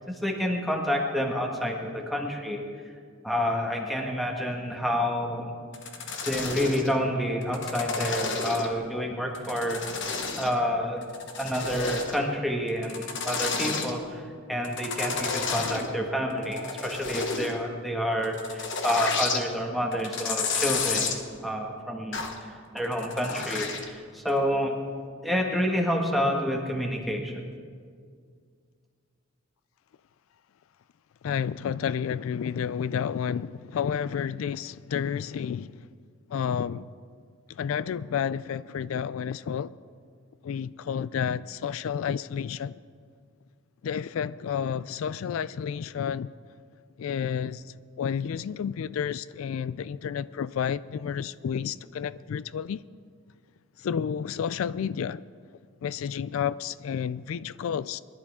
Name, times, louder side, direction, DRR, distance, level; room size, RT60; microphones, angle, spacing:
voice 1, 0.0-2.6 3.2-5.5 6.3-9.8 10.4-11.1 11.4-14.2 14.5-21.2 21.4-24.7 25.2-27.4, equal, ahead, 1.6 m, -28 dB
sound 1, 5.7-6.9 7.4-8.8 9.3-10.6 11.0-12.2 12.7-13.9 14.6-15.9 16.3-17.6 18.2-19.4 19.9-21.2 22.1-22.4 22.8-23.9 24.3-24.4, left 5 dB, 65° left, 1.3 m, -31 dB
voice 2, 31.2-35.8 36.3-36.8 37.5-39.7 40.4-42.8 43.8-46.3 47.0-52.8 53.8-55.2 55.8-58.0, left 7 dB, 85° left, 0.3 m, -30 dB
22.0 x 11.5 x 3.7 m
head